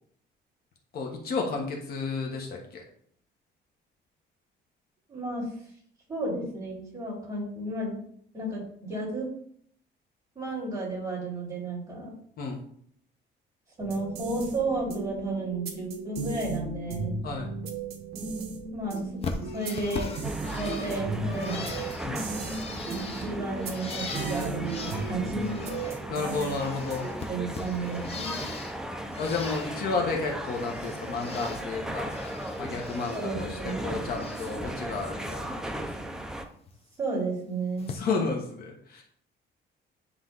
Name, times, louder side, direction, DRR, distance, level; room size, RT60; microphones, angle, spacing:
voice 1, 0.9-2.8 12.4-12.6 17.2-17.5 22.0-22.2 26.1-27.1 29.2-32.1 32.6-35.9 37.9-39.0, left 4 dB, 55° left, 0 dB, 1.3 m, -32 dB
voice 2, 5.1-5.5 6.1-8.0 8.3-9.3 10.3-12.1 13.8-17.2 18.7-20.1 20.5-21.7 23.1-25.8 27.0-28.5 33.1-33.8 37.0-37.9, right 2 dB, 20° right, -5 dB, 3.3 m, -33 dB
sound 1, 13.8-27.2, right 4 dB, 55° right, 1.3 m, -36 dB
Bird, 19.2-26.0 26.3-28.8 29.1-30.0 30.3-31.6 32.0-33.2 33.5-34.6 35.0-35.4 36.7-36.8 37.8-38.0, left 4 dB, 30° left, 0.8 m, -40 dB
sound 2, 20.2-36.4, right 1 dB, 5° right, 0.5 m, -37 dB
9.8 x 3.4 x 4.0 m, 0.63 s
cardioid pair, 160°, 19 cm